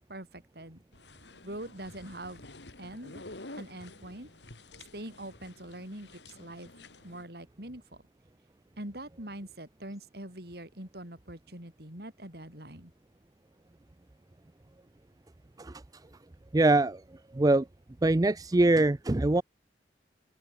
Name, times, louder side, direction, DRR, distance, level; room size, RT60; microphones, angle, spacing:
voice 1, 0.1-0.8 1.4-2.4 2.8-3.2 3.5-4.3 4.9-6.7 7.0-8.0 8.8-12.9, right 1 dB, 60° right, 6.9 m, -43 dB
sound 1, 0.9-7.3, left 2 dB, 80° left, 2.9 m, -50 dB
voice 2, 16.5-17.0 17.3-17.7 18.0-19.4, right 2 dB, 20° right, 0.5 m, -23 dB
open air
head